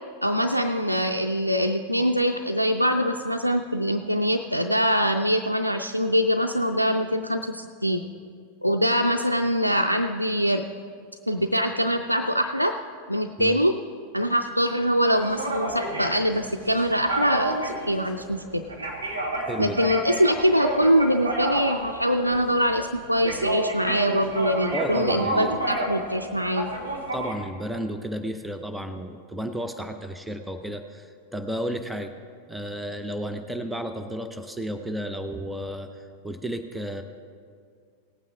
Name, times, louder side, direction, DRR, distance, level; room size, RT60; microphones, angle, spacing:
voice 1, 0.2-8.0 8.6-10.7 11.3-12.8 13.1-13.8 14.1-18.6 19.6-26.7, equal, 90° left, 4 dB, 0.3 m, -23 dB
sound 1, 15.1-26.1 26.4-27.3, right 2 dB, 75° right, 1.9 m, -29 dB
voice 2, 19.4-19.9 24.7-25.5 27.1-32.1 32.5-37.0, equal, 5° right, 7 dB, 0.6 m, -32 dB
18.0 x 8.8 x 3.6 m, 2.2 s
figure-of-eight pair, 90°, 0 cm